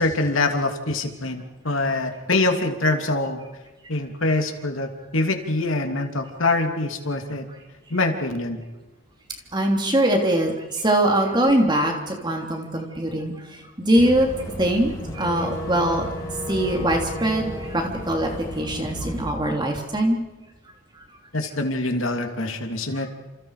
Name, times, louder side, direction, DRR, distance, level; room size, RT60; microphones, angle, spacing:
voice 1, 0.0-3.4 3.9-7.5 7.9-8.6 21.3-23.1, left 2 dB, 80° left, 4 dB, 2.8 m, -24 dB
voice 2, 9.5-13.3 13.8-14.3 14.6-16.0 16.5-18.3 18.6-20.2, right 1 dB, 20° right, 2 dB, 3.3 m, -22 dB
Boat Water vehicle / Engine, 14.0-19.3, equal, 20° left, 5.5 m, -33 dB
29.5 x 28.0 x 5.0 m, 1.1 s
head